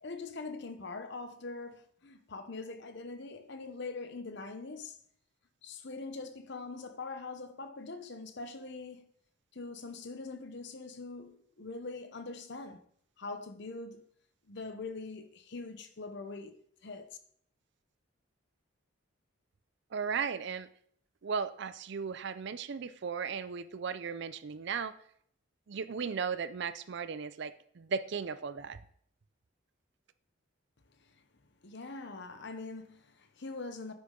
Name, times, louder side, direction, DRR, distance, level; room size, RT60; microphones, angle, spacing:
voice 1, 0.0-5.0 5.6-9.1 9.5-12.8 13.2-14.0 14.5-16.6 16.8-17.2 31.6-33.9, left 3 dB, 55° left, 0.8 m, -43 dB
voice 2, 19.9-20.7 21.2-24.9 25.7-28.8, right 6 dB, 55° right, 0.4 m, -36 dB
9.5 x 6.2 x 3.8 m
head